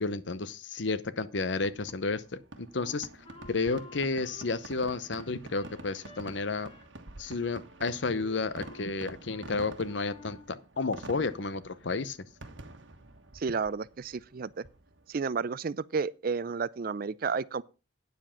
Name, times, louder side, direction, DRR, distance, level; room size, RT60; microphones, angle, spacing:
voice 1, 0.0-2.2 2.6-3.1 3.5-6.7 7.2-12.2, left 3 dB, 70° left, 0.8 m, -31 dB
Fireworks, 1.6-15.1, right 2 dB, 80° right, 1.4 m, -49 dB
Wind instrument woodwind instrument, 2.8-6.3 6.7-6.9 7.2-7.9 8.1-8.9 9.3-9.5 9.8-10.5, left 3 dB, 30° left, 1.6 m, -52 dB
voice 2, 13.3-14.6 15.1-17.6, right 5 dB, 50° right, 0.4 m, -32 dB
9.5 x 7.5 x 5.7 m
head